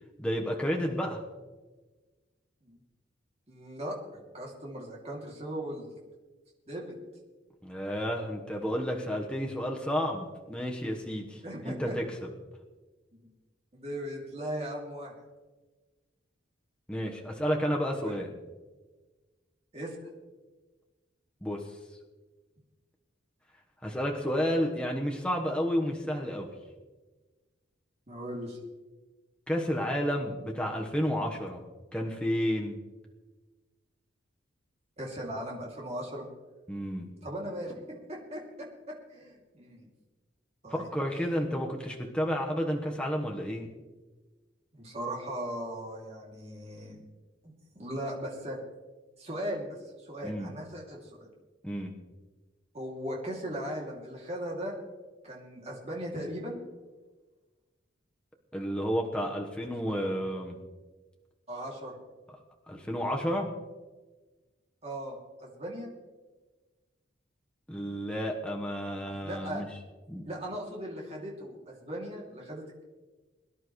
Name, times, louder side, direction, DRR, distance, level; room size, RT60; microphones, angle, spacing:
voice 1, 0.2-1.2 7.6-12.3 16.9-18.3 21.4-21.6 23.8-26.5 29.5-31.6 31.9-32.8 36.7-37.1 40.7-43.7 50.2-50.5 51.6-51.9 58.5-60.6 62.7-63.5 67.7-69.7 70.1-70.2, equal, 5° left, 0 dB, 1.2 m, -31 dB
voice 2, 3.5-5.9 6.7-6.9 11.4-11.9 13.1-13.3 13.7-15.1 17.9-18.2 19.7-20.0 28.1-28.6 35.0-36.3 37.2-37.8 38.1-39.9 40.6-40.9 44.7-47.0 47.7-48.6 49.2-49.7 50.1-51.3 52.7-54.8 55.2-56.6 61.5-62.0 64.8-65.9 69.1-69.6 70.2-72.8, equal, 35° right, -2 dB, 2.7 m, -38 dB
22.5 x 11.0 x 3.2 m, 1.3 s
head